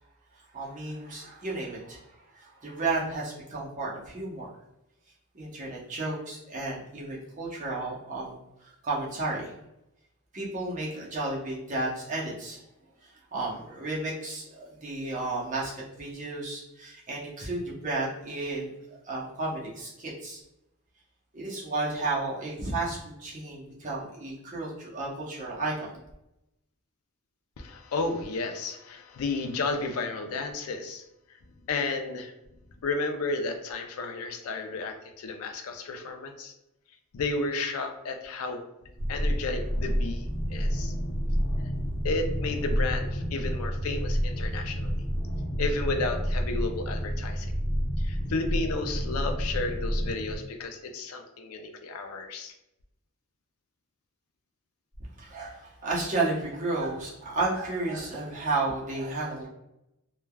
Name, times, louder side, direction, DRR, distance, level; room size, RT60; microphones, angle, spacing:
voice 1, 0.5-4.5 5.3-9.5 10.3-12.6 13.0-15.7 16.0-20.4 21.3-25.9 55.2-59.5, right 2 dB, 35° right, -5 dB, 0.7 m, -33 dB
voice 2, 27.6-31.0 31.7-32.3 32.8-36.5 37.1-38.6 39.1-40.9 42.0-44.9 45.6-47.5 48.0-52.5, left 3 dB, 90° left, 5 dB, 0.4 m, -32 dB
sound 1, 39.0-50.4, equal, 60° left, 0.8 m, -29 dB
3.2 x 2.2 x 2.2 m, 0.86 s
head